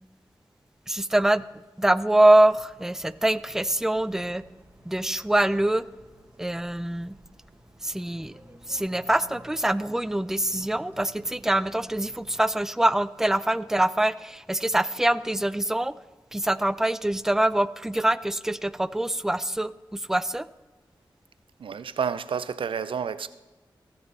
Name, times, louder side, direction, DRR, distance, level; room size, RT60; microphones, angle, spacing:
voice 1, 0.9-1.4 1.8-4.4 4.9-5.8 6.4-7.2 7.8-8.3 8.7-15.9 16.3-20.5, right 1 dB, 5° right, 0.4 m, -24 dB
sound 1, 2.4-12.4, right 1 dB, 20° right, 1.6 m, -54 dB
voice 2, 21.6-23.3, right 7 dB, 75° right, 0.5 m, -30 dB
19.0 x 7.0 x 4.1 m
cardioid pair, 45°, 9 cm